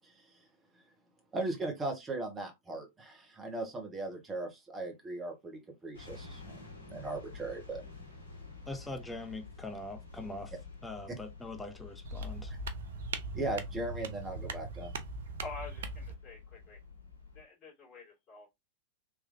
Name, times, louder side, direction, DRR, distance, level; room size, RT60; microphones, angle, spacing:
voice 1, 1.3-6.4 6.9-7.8 13.3-14.9, right 2 dB, 15° right, 1.3 m, -38 dB
sound 1, 5.9-17.4, left 4 dB, 85° right, 1.2 m, -50 dB
voice 2, 8.7-10.5 10.8-12.5, left 2 dB, 10° left, 0.5 m, -42 dB
sound 2, 12.0-16.2, right 3 dB, 60° right, 0.5 m, -40 dB
voice 3, 15.4-16.8 17.3-18.5, left 3 dB, 35° left, 2.2 m, -47 dB
3.5 x 3.2 x 2.6 m
figure-of-eight pair, 90°, 0 cm